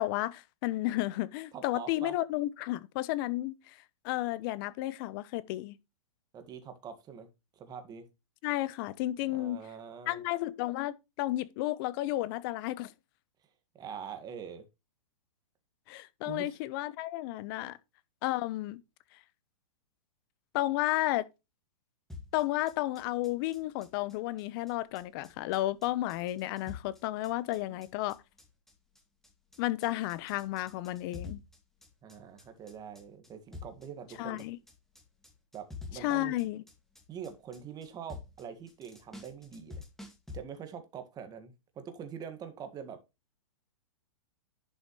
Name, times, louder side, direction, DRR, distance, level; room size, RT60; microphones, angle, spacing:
voice 1, 0.0-3.7 4.0-5.8 8.4-9.6 10.1-12.9 15.9-17.8 18.2-18.8 20.5-21.3 22.3-28.2 29.6-31.4 34.2-34.6 36.0-36.6, left 16 dB, 40° left, 0.9 m, -32 dB
voice 2, 1.5-2.2 6.3-8.1 9.3-10.2 13.7-14.6 16.2-16.5 17.6-17.7 27.7-27.8 32.0-34.4 35.5-36.3 37.1-39.8 40.3-43.0, right 7 dB, 20° right, 1.8 m, -44 dB
sound 1, 22.1-40.4, left 4 dB, ahead, 2.1 m, -48 dB
11.0 x 6.2 x 3.1 m
hypercardioid pair, 140°, 18 cm